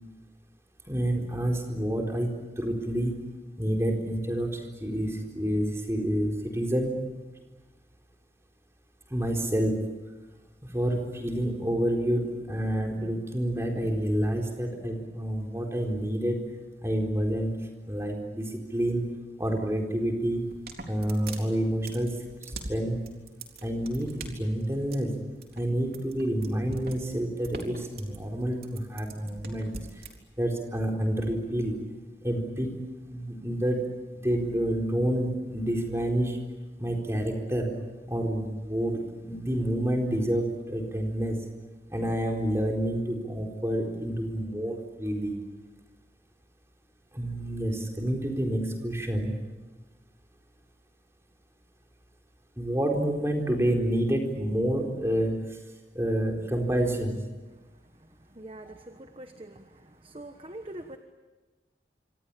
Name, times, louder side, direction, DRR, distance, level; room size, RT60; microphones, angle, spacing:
voice 1, 0.9-3.2 3.6-7.0 9.1-9.8 10.6-16.5 16.8-19.1 19.4-20.5 20.9-23.0 23.6-25.1 25.5-29.7 30.4-31.8 32.2-32.8 33.1-33.8 34.2-36.4 36.8-37.7 38.1-41.4 41.9-45.3 47.1-49.3 52.6-55.6 55.9-57.2, right 1 dB, 15° right, 1 dB, 4.2 m, -28 dB
sound 1, 20.4-30.1, right 3 dB, 55° right, 3.9 m, -42 dB
voice 2, 58.4-59.6 60.0-61.0, right 1 dB, 30° right, 7 dB, 1.3 m, -43 dB
26.5 x 25.5 x 8.6 m, 1.2 s
head